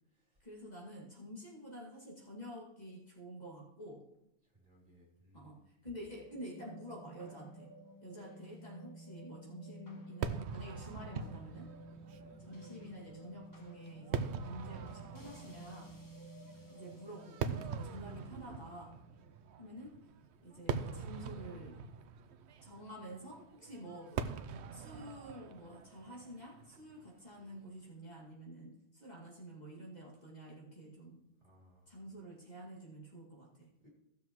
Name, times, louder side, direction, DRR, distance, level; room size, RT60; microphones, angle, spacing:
voice 1, 0.4-4.0 5.3-7.7 8.0-11.7 12.4-15.9 16.7-18.9 19.6-19.9 20.4-21.8 22.6-24.2 24.7-31.2 31.9-33.7, equal, 40° left, -4 dB, 2.4 m, -49 dB
voice 2, 4.4-5.6 12.1-12.4 16.4-16.8 31.4-32.0 33.8-33.9, equal, 35° right, -4 dB, 3.1 m, -65 dB
sound 1, 5.9-20.3, right 1 dB, 20° left, 1.3 m, -54 dB
Fireworks, 10.2-27.6, right 6 dB, 80° right, 0.9 m, -43 dB
16.0 x 7.1 x 3.1 m, 0.86 s
omnidirectional pair, 1.1 m